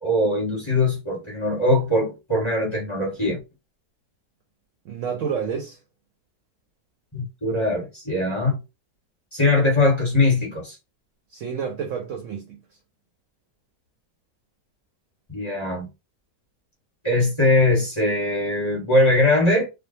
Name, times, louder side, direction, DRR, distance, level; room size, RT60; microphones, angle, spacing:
voice 1, 0.0-3.4 7.1-8.6 9.3-10.8 15.3-15.9 17.0-19.7, left 2 dB, 20° left, 1.1 m, -21 dB
voice 2, 4.8-5.8 11.3-12.6, right 7 dB, 70° right, 0.8 m, -29 dB
2.6 x 2.0 x 2.6 m
omnidirectional pair, 1.7 m